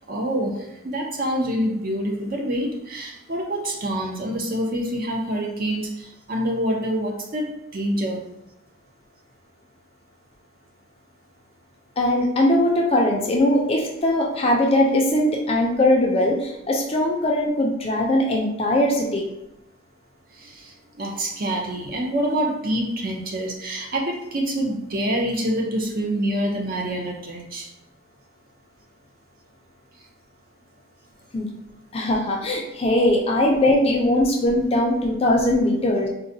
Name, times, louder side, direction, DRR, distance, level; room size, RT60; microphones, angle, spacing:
voice 1, 0.1-7.5 7.7-8.2 20.4-20.5 21.0-27.7, right 1 dB, 45° right, 1 dB, 0.5 m, -26 dB
voice 2, 12.0-19.3 31.3-31.5 31.9-36.1, left 1 dB, 30° left, -1 dB, 0.4 m, -20 dB
3.8 x 2.1 x 2.6 m, 0.90 s
head